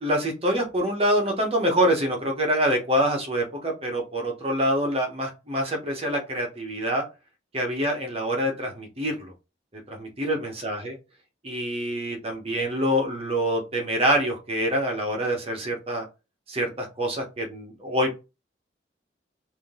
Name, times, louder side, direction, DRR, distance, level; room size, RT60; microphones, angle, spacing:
voice 1, 0.0-7.0 7.5-9.3 9.9-10.9 11.4-16.1 16.5-18.1, equal, 35° right, 2 dB, 1.0 m, -26 dB
3.7 x 2.7 x 3.6 m, 0.29 s
head